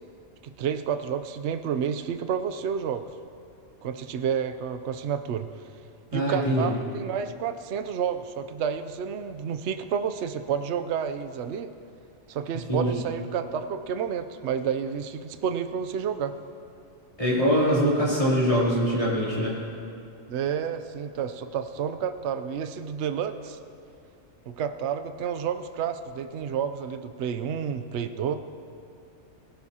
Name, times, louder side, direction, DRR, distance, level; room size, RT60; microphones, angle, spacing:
voice 1, 0.4-3.0 3.8-5.5 6.1-11.7 12.3-16.4 20.3-23.6 24.5-28.4, right 7 dB, 65° right, 9 dB, 0.9 m, -30 dB
voice 2, 6.1-6.7 12.7-13.0 17.2-19.6, equal, 25° left, -8 dB, 3.1 m, -23 dB
20.0 x 17.0 x 2.9 m, 2.6 s
omnidirectional pair, 1.3 m